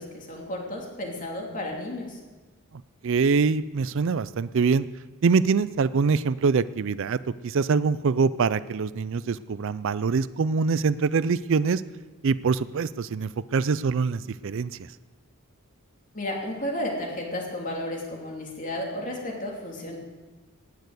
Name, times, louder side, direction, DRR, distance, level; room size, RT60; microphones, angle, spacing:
voice 1, 0.0-2.2 16.1-20.0, left 1 dB, 35° left, -1 dB, 3.0 m, -33 dB
voice 2, 3.0-4.9 5.2-7.2 7.4-11.8 12.2-14.7, right 5 dB, 60° right, 16 dB, 0.4 m, -24 dB
18.5 x 6.7 x 8.1 m, 1.3 s
head